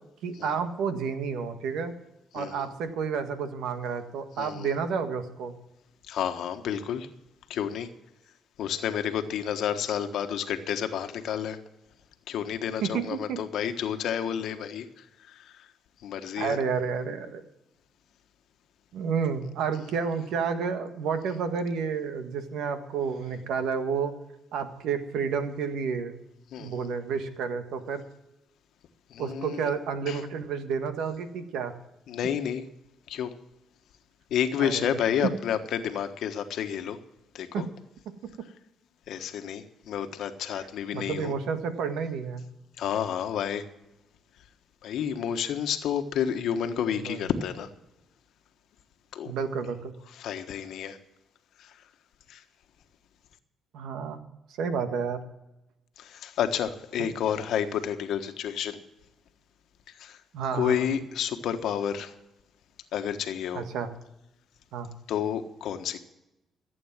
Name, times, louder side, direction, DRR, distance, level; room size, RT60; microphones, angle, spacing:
voice 1, 0.2-1.9 2.3-5.5 12.8-13.4 16.4-17.4 18.9-24.1 24.5-26.2 26.6-28.0 29.2-31.7 34.6-34.9 37.5-37.6 38.0-38.1 40.5-40.7 40.9-42.4 46.9-47.2 49.2-49.9 53.7-54.2 54.6-55.2 60.3-60.9 63.5-63.9 64.7-64.9, right 6 dB, 85° right, 8 dB, 1.6 m, -30 dB
voice 2, 2.3-2.7 4.4-4.7 6.1-7.1 7.5-7.9 8.6-11.6 12.3-14.9 15.3-15.5 16.0-16.6 26.5-26.9 29.1-29.7 30.1-30.2 32.1-32.6 33.1-33.3 34.3-37.0 37.3-37.6 39.1-41.3 42.8-43.6 44.8-47.7 49.1-49.3 50.1-51.0 51.6-51.7 52.3-52.4 56.0-58.8 60.0-60.2 60.5-62.1 62.9-63.6 65.1-66.0, left 9 dB, 80° left, 8 dB, 1.3 m, -30 dB
15.5 x 8.6 x 7.3 m, 0.93 s
cardioid pair, 90°, 0 cm